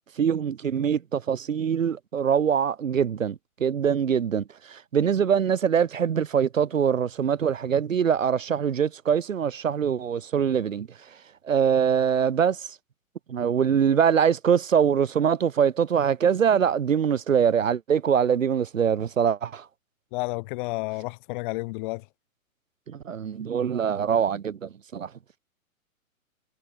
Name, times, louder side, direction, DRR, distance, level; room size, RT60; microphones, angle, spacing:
voice 1, 0.2-10.9 11.4-12.7 13.3-19.7 22.9-25.1, right 7 dB, 65° right, 1.9 m, -23 dB
voice 2, 20.1-22.0, left 25 dB, 35° left, 3.0 m, -31 dB
figure-of-eight pair, 115°, 43 cm